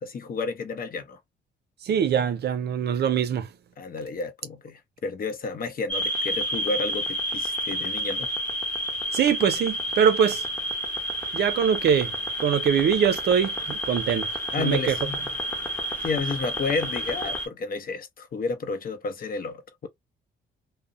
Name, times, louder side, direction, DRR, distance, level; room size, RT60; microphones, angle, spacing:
voice 1, 0.0-1.2 3.8-8.3 14.5-15.2 16.0-19.9, left 4 dB, 45° left, 0.7 m, -31 dB
voice 2, 1.9-3.4 9.1-10.4 11.3-12.1 12.4-13.5 13.9-14.2 14.6-14.8, right 8 dB, 55° right, 0.4 m, -22 dB
sound 1, 5.9-17.5, equal, 10° left, 1.0 m, -30 dB
2.5 x 2.1 x 2.4 m
cardioid pair, 90°, 20 cm